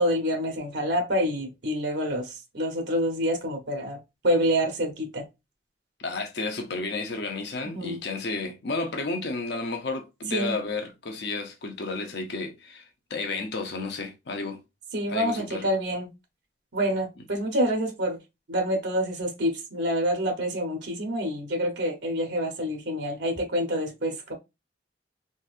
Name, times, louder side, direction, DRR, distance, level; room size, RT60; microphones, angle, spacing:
voice 1, 0.0-4.0 4.2-5.2 7.7-8.0 10.3-10.5 14.9-16.1 16.7-18.2 18.5-24.3, equal, 75° right, 0.9 m, -27 dB
voice 2, 6.0-14.6 15.1-15.7, left 3 dB, 70° left, 0.6 m, -32 dB
3.9 x 2.5 x 2.4 m
head